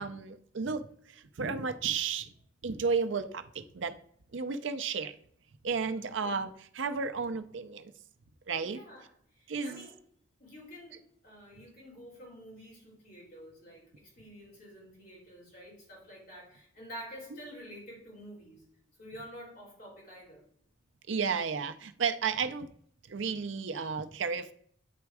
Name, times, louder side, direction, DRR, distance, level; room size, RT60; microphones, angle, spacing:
voice 1, 0.0-2.3 2.6-4.0 4.3-5.2 5.6-7.9 8.5-8.8 9.5-9.9 21.1-22.7 23.1-24.5, right 5 dB, 75° right, 10 dB, 0.6 m, -33 dB
voice 2, 5.9-6.3 8.6-10.0 10.4-18.6 19.0-20.4, equal, 45° left, -4 dB, 3.5 m, -49 dB
9.3 x 3.5 x 4.8 m, 0.64 s
head